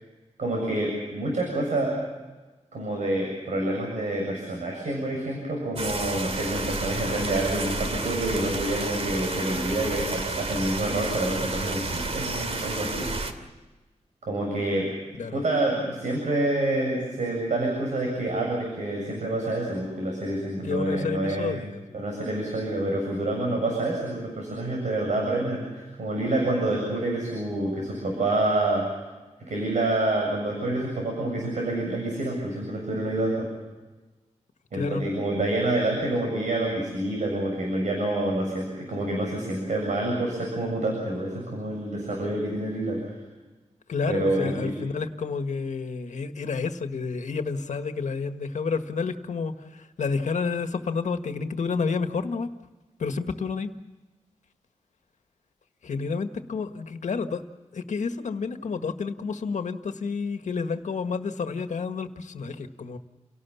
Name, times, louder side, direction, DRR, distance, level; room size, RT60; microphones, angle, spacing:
voice 1, 0.4-2.0 2.7-13.1 14.2-14.9 15.3-21.6 21.9-28.8 29.5-33.5 34.7-43.2 44.1-44.7, right 1 dB, 80° right, 0 dB, 7.5 m, -27 dB
sound 1, 5.8-13.3, right 3 dB, 55° right, 2.6 m, -31 dB
voice 2, 20.6-22.0 34.7-35.0 43.9-52.5 53.0-53.7 55.8-57.4 57.7-63.0, left 5 dB, 85° left, 7 dB, 1.7 m, -30 dB
29.5 x 18.0 x 7.2 m, 1.2 s
wide cardioid pair, 135°, 12 cm